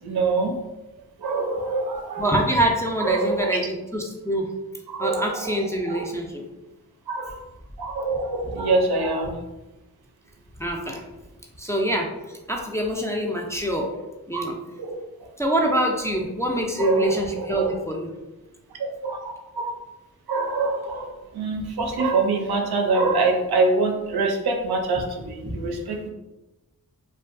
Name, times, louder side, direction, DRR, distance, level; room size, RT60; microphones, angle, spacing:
voice 1, 0.0-0.5 1.2-2.3 3.0-3.6 4.9-5.6 5.9-6.1 7.1-7.4 7.8-9.4 14.3-14.4 14.8-15.0 16.8-17.8 18.8-19.8 20.3-26.1, right 3 dB, 90° right, 3 dB, 0.5 m, -25 dB
voice 2, 2.2-4.5 5.0-6.4 10.6-11.0 11.6-12.1 12.5-13.9 14.3-14.6 15.4-18.1 25.5-25.6, right 1 dB, 10° left, 0 dB, 0.3 m, -25 dB
2.6 x 2.2 x 2.5 m, 1.0 s
wide cardioid pair, 65°, 37 cm